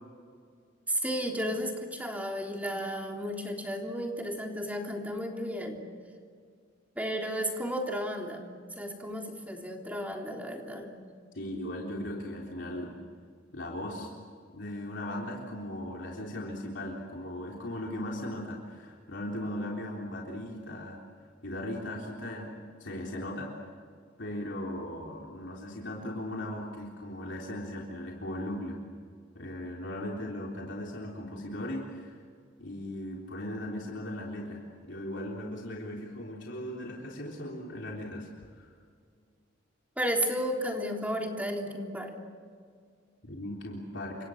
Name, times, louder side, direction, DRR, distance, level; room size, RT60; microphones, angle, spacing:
voice 1, 0.9-5.8 6.9-10.9 40.0-42.1, equal, 10° right, 1 dB, 3.5 m, -33 dB
voice 2, 11.3-13.0 13.5-14.1 14.5-21.0 21.4-22.5 22.8-23.5 24.2-28.8 29.4-32.2 32.6-38.7 43.2-44.2, left 1 dB, 65° left, -2 dB, 3.7 m, -38 dB
30.0 x 26.5 x 6.6 m, 2.1 s
head